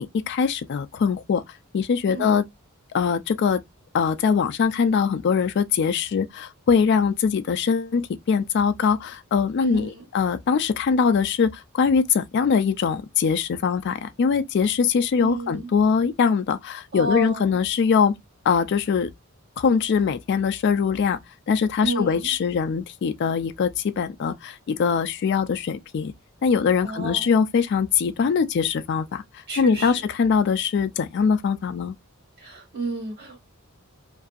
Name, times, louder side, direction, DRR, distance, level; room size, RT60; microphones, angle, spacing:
voice 1, 0.0-1.4 1.7-2.4 2.9-3.6 3.9-18.1 18.5-19.1 19.6-21.2 21.5-26.1 26.4-29.2 29.6-31.9, left 6 dB, 55° left, 0.3 m, -22 dB
voice 2, 2.1-2.4 9.6-10.0 15.2-15.7 16.9-17.6 21.8-22.3 26.8-27.3 29.5-30.0 32.4-33.4, right 2 dB, 50° right, 1.4 m, -31 dB
2.6 x 2.3 x 2.4 m
head